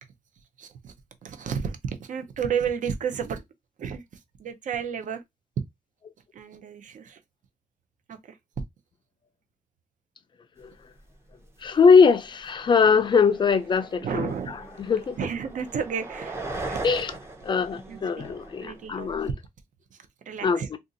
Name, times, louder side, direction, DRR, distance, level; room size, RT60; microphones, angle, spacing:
voice 1, 0.6-0.9 1.2-3.4 3.8-4.0 4.4-5.2 6.3-7.2 8.1-8.4 14.0-14.6 15.2-17.0 17.9-18.3 18.6-19.1 19.9-20.0 20.3-20.7, right 7 dB, 55° right, 0.6 m, -32 dB
sound 1, 11.0-11.1 11.4-11.9 12.3-19.3, right 2 dB, 15° right, 0.6 m, -40 dB
voice 2, 11.6-15.2 16.8-17.1 17.4-19.3 20.4-20.8, left 5 dB, 30° left, 0.4 m, -21 dB
2.6 x 2.4 x 3.8 m
wide cardioid pair, 165°, 15 cm